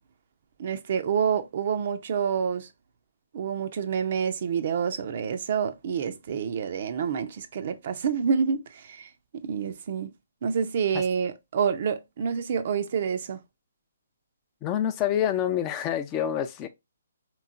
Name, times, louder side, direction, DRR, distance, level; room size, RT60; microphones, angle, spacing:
voice 1, 0.6-2.7 3.3-9.1 9.4-10.1 10.4-13.4, right 7 dB, 45° right, 0.5 m, -28 dB
voice 2, 14.6-16.7, left 10 dB, 25° left, 0.4 m, -27 dB
3.6 x 3.0 x 2.4 m
figure-of-eight pair, 135°, 0 cm